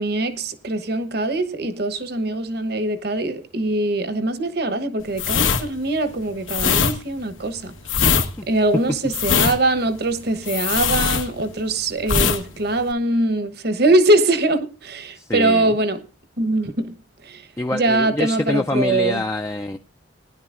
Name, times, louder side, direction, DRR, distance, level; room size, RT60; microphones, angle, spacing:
voice 1, 0.0-7.7 8.5-16.0 16.4-16.9 17.2-17.4 17.7-19.2, right 2 dB, 55° right, 1.1 m, -22 dB
sound 1, 5.1-11.7 12.0-12.4 12.7-12.9, left 6 dB, 80° left, 1.5 m, -21 dB
voice 2, 15.1-15.7 17.6-19.8, left 1 dB, 15° left, 0.5 m, -25 dB
19.0 x 10.5 x 2.5 m
head